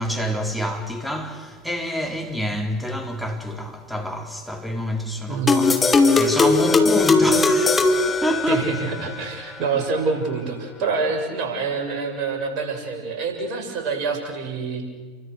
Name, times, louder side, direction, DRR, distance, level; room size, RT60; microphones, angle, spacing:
voice 1, 0.0-8.9, equal, ahead, 4.3 m, -28 dB
voice 2, 5.3-5.7 8.5-14.9, right 4 dB, 50° right, 6.9 m, -26 dB
sound 1, 5.5-8.9, left 3 dB, 20° left, 3.0 m, -18 dB
30.0 x 24.5 x 6.5 m
figure-of-eight pair, 80°, 0 cm